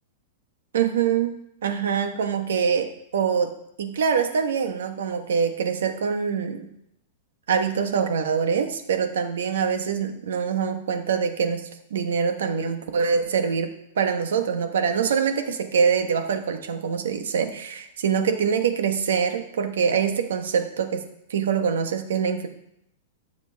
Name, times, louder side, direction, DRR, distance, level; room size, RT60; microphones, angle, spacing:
voice 1, 0.7-3.5 3.8-6.7 7.5-21.0 21.3-22.5, right 6 dB, 90° right, 7 dB, 1.2 m, -24 dB
13.0 x 7.1 x 3.5 m, 0.79 s
supercardioid pair, 165°, 0 cm